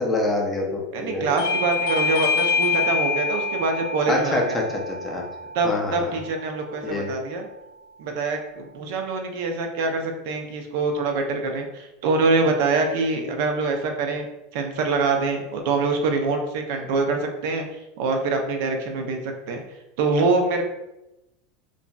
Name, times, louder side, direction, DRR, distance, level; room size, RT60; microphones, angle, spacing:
voice 1, 0.0-1.2 4.1-5.2 5.6-6.1 6.8-7.1, left 2 dB, 15° left, -1 dB, 0.4 m, -26 dB
voice 2, 0.9-4.6 5.5-7.5 8.0-14.3 14.5-17.7 18.0-19.2 19.5-19.6 20.0-20.6, right 3 dB, 60° right, 4 dB, 0.4 m, -24 dB
Bell / Doorbell, 1.4-6.6, left 4 dB, 80° left, 0.4 m, -26 dB
3.0 x 2.5 x 2.2 m, 0.94 s
supercardioid pair, 160°, 0 cm